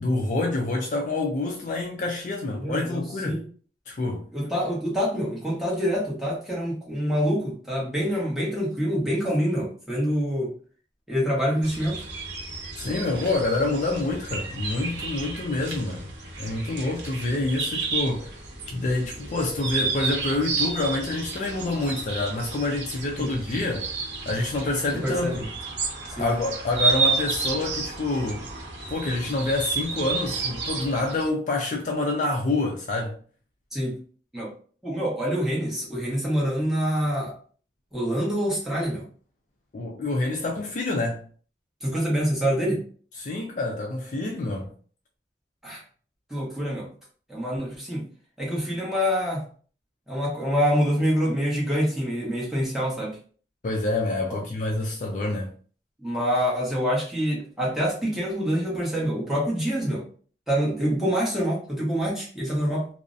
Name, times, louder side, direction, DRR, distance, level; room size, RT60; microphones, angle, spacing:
voice 1, 0.0-3.4 3.9-4.3 12.8-16.1 16.4-18.4 18.7-23.9 24.2-25.5 26.2-28.5 28.9-33.2 39.7-41.2 43.2-44.7 53.6-55.5, left 2 dB, 45° left, 0.4 m, -27 dB
voice 2, 2.5-3.4 4.3-10.5 11.1-12.0 23.2-23.3 25.0-25.4 26.2-26.3 33.7-34.0 34.3-34.5 34.8-37.3 37.9-39.0 41.8-42.8 45.6-45.8 46.3-46.9 47.3-48.1 48.4-49.4 50.1-53.2 56.0-60.1 60.5-62.9, equal, ahead, 0.9 m, -26 dB
sound 1, 11.6-31.3, right 4 dB, 85° right, 0.6 m, -31 dB
2.4 x 2.0 x 2.5 m
head